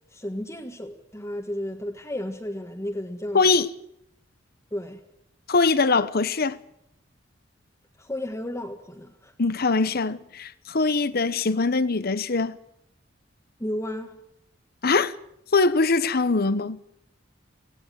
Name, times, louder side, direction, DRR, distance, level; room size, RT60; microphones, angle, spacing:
voice 1, 0.1-3.5 4.7-5.0 8.0-9.3 13.6-14.2, left 1 dB, 15° left, 1.6 m, -33 dB
voice 2, 3.3-3.7 5.5-6.6 9.4-12.6 14.8-15.1 15.5-16.8, left 3 dB, 50° left, 1.0 m, -22 dB
18.0 x 17.0 x 9.1 m
head